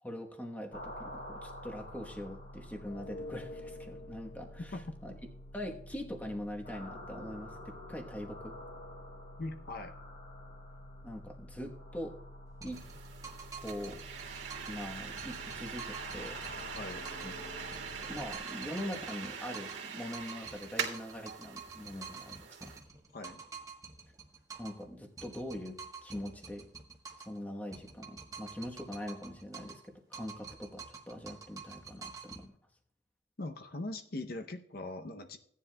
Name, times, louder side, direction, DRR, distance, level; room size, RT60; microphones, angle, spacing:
voice 1, 0.0-4.8 5.0-5.1 5.5-8.6 11.0-12.1 12.6-12.8 13.6-14.0 14.7-16.4 17.2-17.3 18.0-22.7 24.6-26.7 27.2-32.5, left 1 dB, 10° left, 2 dB, 1.0 m, -42 dB
sound 1, 0.7-18.3, left 1 dB, 75° left, 3.4 m, -48 dB
voice 2, 9.4-9.9 16.7-17.0 23.1-23.4 33.4-35.4, left 2 dB, 50° left, 6 dB, 0.7 m, -41 dB
sound 2, 12.6-14.8 15.2-17.4 17.7-19.9 20.1-24.8 25.2-27.4 27.7-29.9 30.1-32.4, right 5 dB, 20° right, 1.1 m, -48 dB
sound 3, 12.7-22.8, right 6 dB, 80° right, 2.1 m, -43 dB
16.5 x 10.0 x 2.2 m, 0.70 s
head